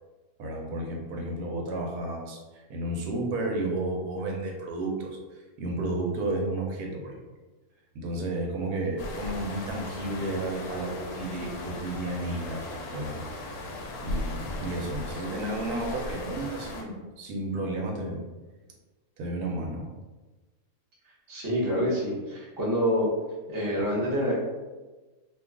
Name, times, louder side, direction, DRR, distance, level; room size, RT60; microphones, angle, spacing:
voice 1, 0.4-7.2 7.9-12.6 12.9-13.2 14.0-18.2 19.2-19.9, right 2 dB, 85° right, 0 dB, 1.2 m, -32 dB
sound 1, 9.0-16.8, left 1 dB, 80° left, 1.1 m, -37 dB
voice 2, 21.3-23.1 23.5-24.3, equal, 20° right, -7 dB, 0.6 m, -27 dB
2.8 x 2.3 x 3.6 m, 1.2 s
omnidirectional pair, 1.6 m